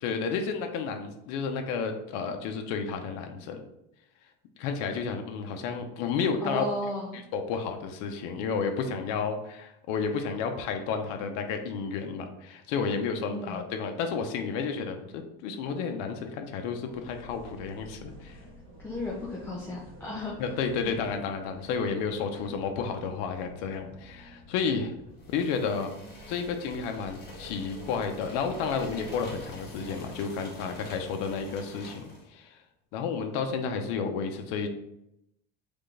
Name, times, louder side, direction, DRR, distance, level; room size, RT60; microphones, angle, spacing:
voice 1, 0.0-3.7 4.6-6.7 7.1-18.4 20.4-24.9 25.3-25.9 26.3-32.6 32.9-34.7, left 5 dB, 70° left, 5 dB, 0.7 m, -31 dB
voice 2, 6.4-7.2 13.3-13.6 18.8-20.3, left 1 dB, 10° left, -5 dB, 0.6 m, -34 dB
sound 1, 16.8-30.2, equal, 40° right, 1.5 m, -50 dB
sound 2, 25.2-32.3, left 1 dB, 35° left, 1.2 m, -46 dB
3.6 x 3.4 x 3.8 m, 0.84 s
cardioid pair, 145°, 29 cm